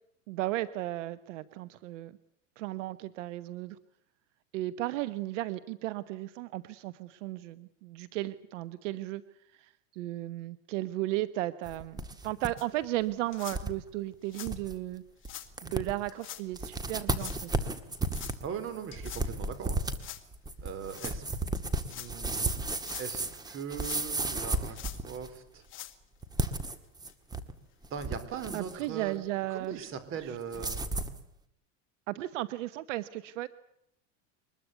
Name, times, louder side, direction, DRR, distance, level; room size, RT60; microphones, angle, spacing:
voice 1, 0.3-2.1 2.6-3.8 4.5-9.2 9.6-15.0 15.6-17.5 28.5-29.9 32.1-33.5, right 16 dB, 80° right, 15 dB, 1.2 m, -35 dB
sound 1, 11.7-12.5 12.8-12.9 13.5-13.7 14.1-14.2 14.4-14.7 15.2-15.3 15.6-16.1 16.5-25.4 26.2-27.5 27.8-28.8 30.5-31.2, right 2 dB, 10° right, 1.8 m, -34 dB
sound 2, 12.6-12.7 13.3-13.6 14.3-14.5 15.2-15.5 16.2-16.4 17.1-17.4 18.1-18.4 18.9-19.3 20.0-20.2 20.9-21.2 21.8-22.1 22.7-23.1 23.8-24.3 24.7-25.0 25.6-26.0 26.6-26.7 27.1-27.2 27.9-28.0, left 13 dB, 35° left, 2.3 m, -44 dB
voice 2, 18.4-19.8 20.6-21.2 21.9-22.5 23.0-25.6 27.9-29.2 29.5-30.8, right 7 dB, 35° right, 12 dB, 4.1 m, -40 dB
23.5 x 21.0 x 8.2 m, 0.77 s
supercardioid pair, 150°, 36 cm